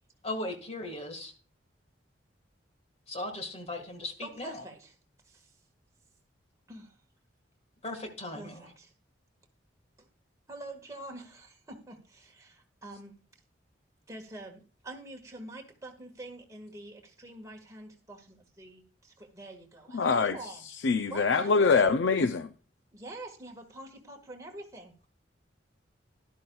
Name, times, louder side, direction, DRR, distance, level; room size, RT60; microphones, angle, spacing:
voice 1, 0.2-1.3 3.1-4.6 7.8-8.7, left 1 dB, 35° left, 1.7 m, -37 dB
voice 2, 4.2-4.9 5.2-5.5 6.7-7.0 8.3-8.9 10.0-10.1 10.5-13.2 14.1-20.6 21.1-22.0 22.9-24.9, right 1 dB, 15° right, 1.6 m, -46 dB
voice 3, 19.9-20.4 20.8-22.5, left 4 dB, 70° left, 0.5 m, -24 dB
12.0 x 11.5 x 2.3 m
head